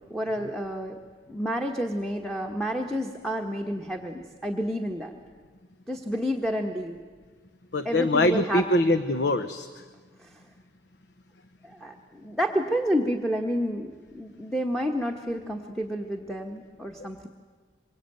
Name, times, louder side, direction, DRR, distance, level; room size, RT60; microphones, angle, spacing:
voice 1, 0.1-1.0 1.3-5.1 5.9-7.0 7.8-8.7 10.2-10.4 11.6-17.3, equal, ahead, 0 dB, 1.2 m, -30 dB
voice 2, 7.7-9.7, left 1 dB, 65° left, 10 dB, 1.0 m, -23 dB
26.5 x 24.5 x 9.1 m, 1.5 s
head